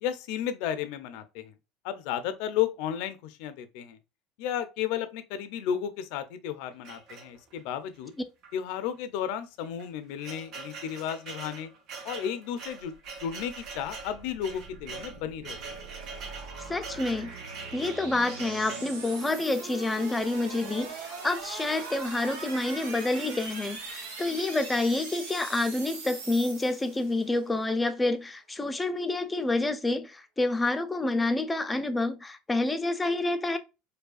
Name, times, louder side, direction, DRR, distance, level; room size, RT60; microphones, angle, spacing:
voice 1, 0.0-1.5 1.8-4.0 4.4-8.1 8.5-11.7 12.0-12.9 13.2-15.8, left 9 dB, 70° left, 0.5 m, -33 dB
sound 1, 6.8-7.7 8.4-8.6 8.8-8.9 9.6-19.0, right 4 dB, 60° right, 0.9 m, -43 dB
sound 2, 12.8-27.4, right 4 dB, 85° right, 1.0 m, -41 dB
voice 2, 16.7-17.3 17.7-20.9 21.2-33.6, left 2 dB, 15° left, 0.5 m, -28 dB
4.7 x 2.3 x 2.4 m
supercardioid pair, 90°, 0 cm